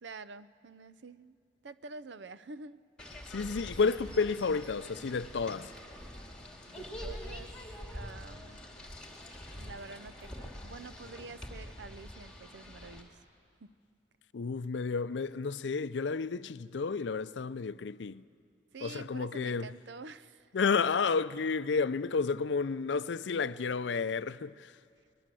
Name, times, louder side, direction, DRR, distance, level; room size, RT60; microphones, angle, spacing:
voice 1, 0.0-1.4 1.6-3.4 6.7-7.6 7.9-9.0 9.5-13.2 13.6-13.7 18.7-20.5, right 3 dB, 85° right, 0.6 m, -48 dB
sound 1, 3.0-13.0, equal, 5° left, 2.7 m, -45 dB
voice 2, 3.3-5.7 14.3-18.2 18.8-19.7 20.5-24.7, left 5 dB, 90° left, 0.5 m, -31 dB
23.5 x 20.5 x 7.7 m
head